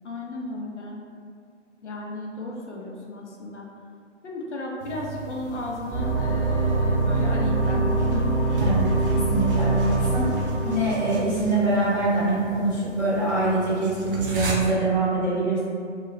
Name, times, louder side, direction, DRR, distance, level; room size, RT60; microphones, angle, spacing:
voice 1, 0.0-1.0 1.8-3.6 4.2-8.5, left 2 dB, 70° left, -2 dB, 0.6 m, -34 dB
sound 1, 4.8-14.5, right 1 dB, 50° right, 0.5 m, -36 dB
sound 2, 5.9-11.2, right 3 dB, 10° right, 0.8 m, -23 dB
voice 2, 8.6-10.3 10.6-15.6, right 2 dB, 15° left, -12 dB, 0.4 m, -24 dB
2.3 x 2.2 x 3.2 m, 2.2 s
figure-of-eight pair, 130°, 37 cm